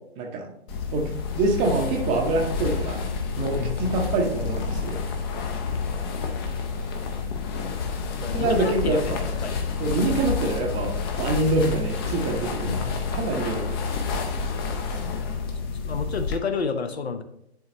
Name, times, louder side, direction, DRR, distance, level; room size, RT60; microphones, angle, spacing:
voice 1, 0.2-0.5 0.9-1.1 1.4-3.0 3.4-5.0 8.3-9.2 9.8-13.7, right 2 dB, 20° right, 2 dB, 0.8 m, -25 dB
sound 1, 0.7-16.4, left 5 dB, 20° left, 0.7 m, -29 dB
voice 2, 8.2-9.2 9.4-9.6 15.2-15.5 15.8-17.2, left 5 dB, 70° left, 9 dB, 1.0 m, -30 dB
10.5 x 3.9 x 2.8 m, 0.78 s
figure-of-eight pair, 130°, 33 cm